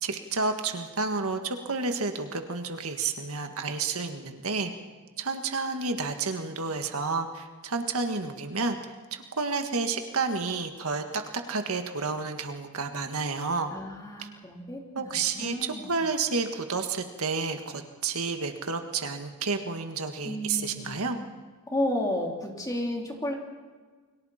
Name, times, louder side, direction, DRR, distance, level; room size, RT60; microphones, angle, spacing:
voice 1, 0.0-4.7 5.2-8.8 9.1-11.2 11.5-13.7 14.2-14.3 14.9-21.2, right 4 dB, 70° right, 5 dB, 1.7 m, -30 dB
voice 2, 13.7-16.0 20.2-21.3 21.7-23.3, left 1 dB, 15° left, 0 dB, 3.7 m, -32 dB
30.0 x 23.0 x 4.4 m, 1.4 s
head